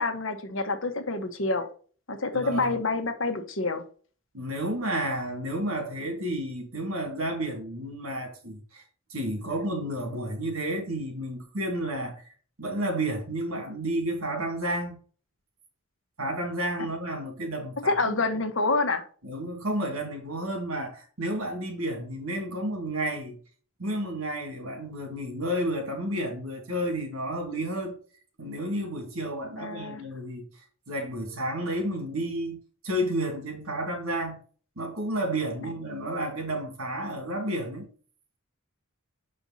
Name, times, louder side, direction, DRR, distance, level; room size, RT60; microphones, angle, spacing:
voice 1, 0.0-1.7 2.1-3.8 17.9-19.0 29.6-30.0, left 3 dB, 65° left, 1.3 m, -27 dB
voice 2, 2.3-2.7 4.3-8.8 9.1-12.3 12.6-15.0 16.2-18.2 19.2-23.4 23.8-28.0 28.4-34.4 34.8-37.9, right 1 dB, 85° right, 2.7 m, -31 dB
6.8 x 5.3 x 4.1 m
head